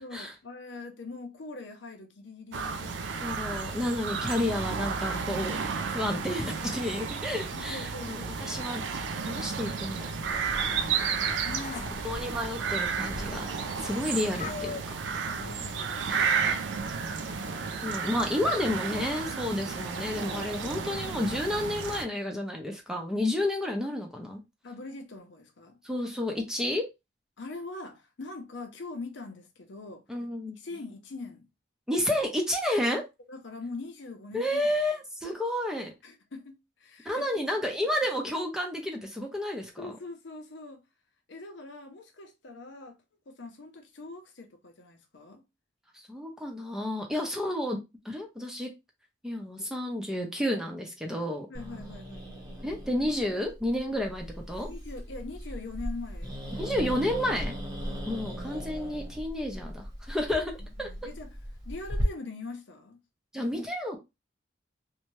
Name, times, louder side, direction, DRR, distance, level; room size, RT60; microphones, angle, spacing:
voice 1, 0.0-3.7 7.5-8.7 11.3-12.0 15.2-17.9 24.6-25.8 27.4-30.0 30.4-31.5 33.3-34.7 36.0-37.5 39.8-40.8 41.3-45.4 51.5-52.7 53.2-53.5 54.7-56.4 57.8-58.1 60.6-61.4 61.6-63.0, left 3 dB, 75° left, 0.7 m, -43 dB
sound 1, 2.5-22.0, right 5 dB, 75° right, 0.4 m, -32 dB
voice 2, 3.2-5.6 5.9-8.8 9.3-11.1 12.0-13.5 13.8-15.0 17.8-24.4 25.8-26.9 30.1-30.5 31.9-33.0 34.3-35.9 37.0-39.9 46.1-47.8 48.0-48.7 49.2-51.5 52.6-54.7 56.5-57.5 58.1-60.4 60.8-60.9 63.3-64.0, left 1 dB, 5° right, 0.6 m, -31 dB
Meow, 10.2-17.1, left 3 dB, 40° left, 0.4 m, -44 dB
Growling, 51.5-62.0, equal, 20° right, 1.0 m, -38 dB
2.7 x 2.2 x 3.1 m
head